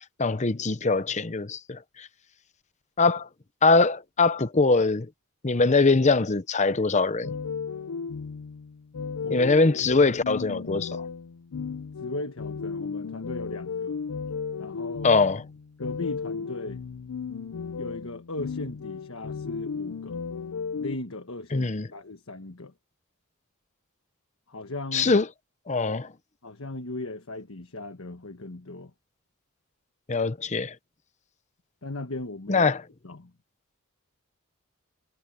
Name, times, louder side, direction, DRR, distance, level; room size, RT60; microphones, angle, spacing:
voice 1, 0.2-2.1 3.0-3.3 3.6-5.1 5.4-7.3 9.3-11.0 15.0-15.4 21.5-21.9 24.9-25.3 25.7-26.1 30.1-30.7 32.5-32.8, left 3 dB, 30° left, 0.8 m, -22 dB
sound 1, 7.2-21.0, left 5 dB, 90° left, 0.5 m, -35 dB
voice 2, 12.0-14.0 14.6-15.1 15.8-16.8 17.8-20.2 20.8-22.7 24.5-25.1 26.4-28.9 31.8-32.7 33.0-33.3, left 2 dB, 70° left, 1.4 m, -37 dB
head